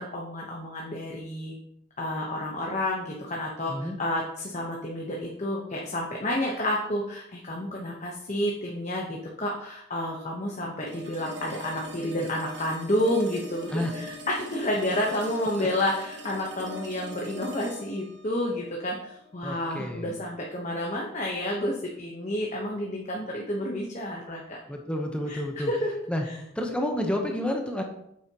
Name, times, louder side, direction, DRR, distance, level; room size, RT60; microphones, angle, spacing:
voice 1, 0.0-1.5 2.0-24.6 25.3-25.4 25.7-25.9, left 1 dB, 35° left, -2 dB, 1.1 m, -30 dB
voice 2, 3.7-4.0 13.7-13.9 15.6-15.7 19.4-20.1 24.7-25.7 26.1-26.2 26.5-27.8, left 1 dB, 5° left, 2 dB, 0.9 m, -30 dB
sound 1, 10.9-19.9, equal, 60° right, 1.3 m, -42 dB
9.0 x 7.7 x 3.0 m, 0.76 s
head